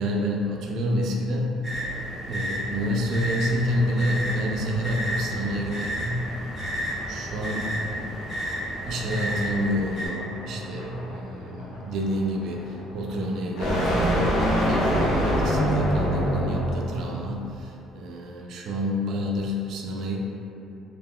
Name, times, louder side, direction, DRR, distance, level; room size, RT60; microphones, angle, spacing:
voice 1, 0.0-1.6 2.3-6.3 7.1-8.3 8.8-20.2, equal, 55° right, 0 dB, 0.4 m, -29 dB
sound 1, 1.6-10.1, equal, ahead, 0.9 m, -32 dB
sound 2, 3.6-17.1, equal, 70° left, 0.7 m, -27 dB
3.5 x 2.3 x 2.2 m, 2.8 s
cardioid pair, 155°, 0 cm